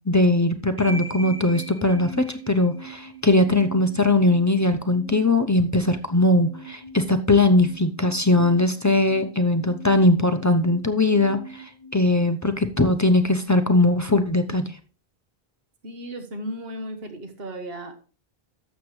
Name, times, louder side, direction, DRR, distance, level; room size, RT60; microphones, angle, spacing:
voice 1, 0.1-14.8, left 2 dB, 20° left, 8 dB, 0.5 m, -20 dB
sound 1, 0.8-12.8, right 1 dB, 40° right, 2.0 m, -41 dB
voice 2, 15.8-18.0, equal, 70° right, 6 dB, 1.5 m, -35 dB
12.0 x 7.2 x 3.2 m, 0.38 s
omnidirectional pair, 1.0 m